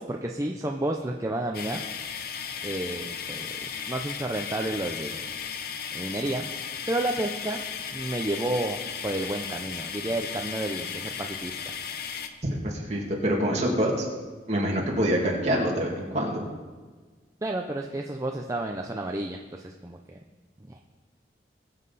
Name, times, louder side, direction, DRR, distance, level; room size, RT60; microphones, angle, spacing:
voice 1, 0.0-1.8 2.6-5.2 5.9-6.4 6.9-7.6 7.9-11.7 17.4-20.2 20.7-20.8, right 1 dB, 20° right, 2 dB, 0.6 m, -31 dB
sound 1, 1.5-12.3, left 7 dB, 55° left, 0.8 m, -35 dB
voice 2, 12.4-14.1 14.5-16.5, equal, 40° right, -2 dB, 2.5 m, -26 dB
21.0 x 7.5 x 4.1 m, 1.4 s
head